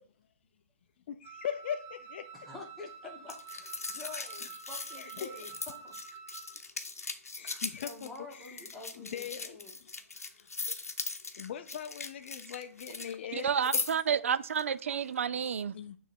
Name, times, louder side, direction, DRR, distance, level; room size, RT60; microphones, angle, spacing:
voice 1, 1.1-2.3 5.0-5.4 7.3-8.7 9.0-9.9 10.4-10.5 11.4-13.8 15.7-16.0, left 8 dB, 50° left, 0.5 m, -40 dB
Wind instrument woodwind instrument, 1.2-6.6, right 6 dB, 30° right, 1.2 m, -48 dB
voice 2, 2.3-5.9 7.8-9.8, left 2 dB, 5° left, 1.5 m, -48 dB
sound 1, 3.3-13.1 13.4-14.1 14.5-14.6, left 4 dB, 85° left, 0.8 m, -39 dB
voice 3, 13.3-15.8, right 7 dB, 60° right, 0.3 m, -30 dB
6.9 x 3.2 x 4.4 m
figure-of-eight pair, 130°, 8 cm